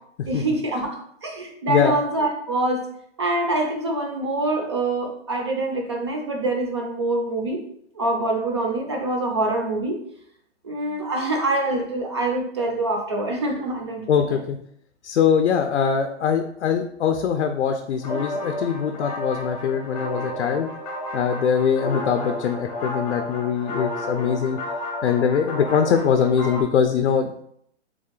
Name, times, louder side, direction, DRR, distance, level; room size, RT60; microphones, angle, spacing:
voice 1, 0.3-2.9 3.2-7.6 8.0-10.0 10.6-14.4, right 2 dB, 25° right, 2 dB, 0.4 m, -25 dB
voice 2, 14.1-14.6 15.0-20.7 21.1-24.6 25.0-27.4, left 7 dB, 70° left, 5 dB, 0.5 m, -22 dB
sound 1, 18.0-26.6, left 1 dB, 35° left, 0.8 m, -32 dB
3.5 x 3.2 x 3.7 m, 0.70 s
hypercardioid pair, 165°, 35 cm